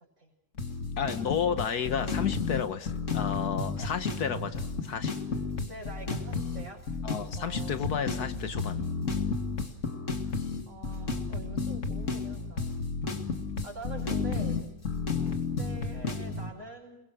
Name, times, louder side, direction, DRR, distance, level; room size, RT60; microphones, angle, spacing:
sound 1, 0.6-16.5, left 4 dB, 50° left, 2.4 m, -32 dB
voice 1, 1.0-5.1 7.0-8.8 15.2-15.4, left 7 dB, 75° left, 1.7 m, -32 dB
voice 2, 5.7-6.8 7.3-7.7 10.7-12.8 13.6-14.6 15.6-17.0, right 2 dB, 45° right, 6.2 m, -45 dB
29.0 x 22.0 x 6.3 m
omnidirectional pair, 1.7 m